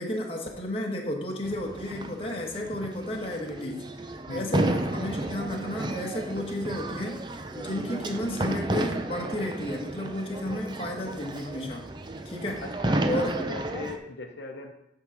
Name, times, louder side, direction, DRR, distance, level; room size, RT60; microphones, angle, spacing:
voice 1, 0.0-3.9 4.3-7.2 7.5-11.8 12.2-12.6 13.0-13.4, left 1 dB, 30° left, 0 dB, 1.2 m, -32 dB
sound 1, 1.4-14.0, right 1 dB, 25° right, 0.5 m, -32 dB
voice 2, 12.6-14.7, left 3 dB, 75° left, 3 dB, 0.8 m, -38 dB
8.7 x 3.8 x 6.0 m, 0.85 s
head